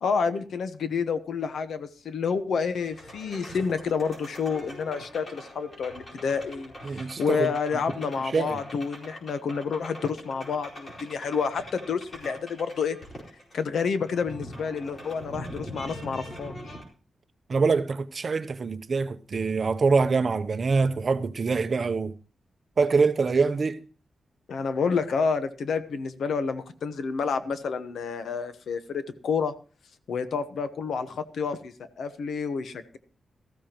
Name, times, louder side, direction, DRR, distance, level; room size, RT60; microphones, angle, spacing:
voice 1, 0.0-13.0 13.5-16.8 24.5-29.5 30.1-33.0, left 5 dB, 75° left, 1.1 m, -29 dB
sound 1, 2.8-16.8, equal, 40° left, 4.6 m, -43 dB
voice 2, 6.9-7.5 8.3-8.6 17.5-22.1 22.8-23.8, right 4 dB, 40° right, 0.7 m, -24 dB
18.5 x 14.0 x 3.0 m
wide cardioid pair, 150°, 0 cm